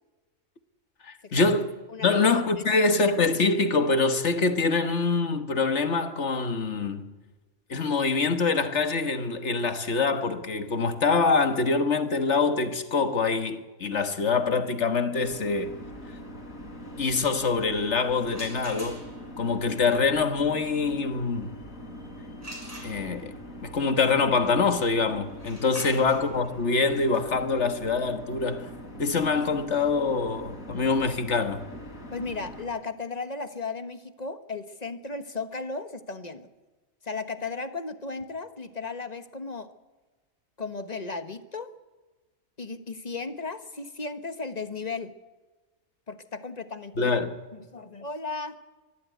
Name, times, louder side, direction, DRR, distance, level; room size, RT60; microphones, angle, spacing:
voice 1, 1.0-1.7 2.0-7.1 7.7-15.8 17.0-19.1 19.4-21.6 22.8-28.7 29.0-31.6 47.0-47.4, left 4 dB, 55° left, 1.8 m, -25 dB
voice 2, 1.9-2.2 2.6-2.8 25.9-26.0 32.1-36.5 37.0-39.7 40.6-41.7 42.6-45.1 46.1-47.1 47.7-48.6, left 4 dB, 30° left, 1.3 m, -35 dB
sound 1, 15.2-32.6, equal, 70° left, 4.2 m, -43 dB
sound 2, 18.2-19.4 22.4-23.4 25.3-31.0, right 1 dB, 10° right, 5.5 m, -46 dB
24.0 x 13.5 x 9.4 m
omnidirectional pair, 1.5 m